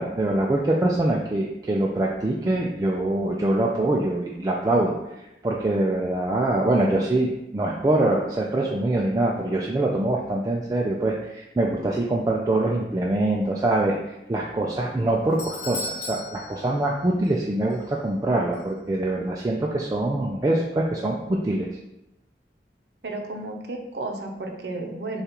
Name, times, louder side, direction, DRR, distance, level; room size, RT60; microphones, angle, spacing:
voice 1, 0.0-21.7, right 2 dB, 20° right, -2 dB, 0.3 m, -24 dB
Doorbell, 14.9-17.4 17.7-17.8 18.5-18.6, left 2 dB, 45° left, 0.8 m, -36 dB
voice 2, 23.0-25.2, right 2 dB, 70° right, 2 dB, 0.6 m, -33 dB
6.5 x 2.4 x 2.9 m, 0.89 s
head